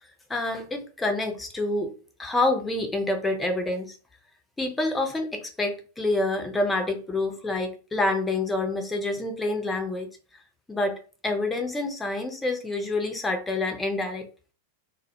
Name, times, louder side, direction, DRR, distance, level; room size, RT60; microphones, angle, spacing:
voice 1, 0.3-1.9 2.2-4.0 4.6-10.1 10.7-14.3, left 2 dB, 10° left, 4 dB, 0.5 m, -27 dB
2.1 x 2.0 x 2.8 m, 0.36 s
figure-of-eight pair, 90°, 0 cm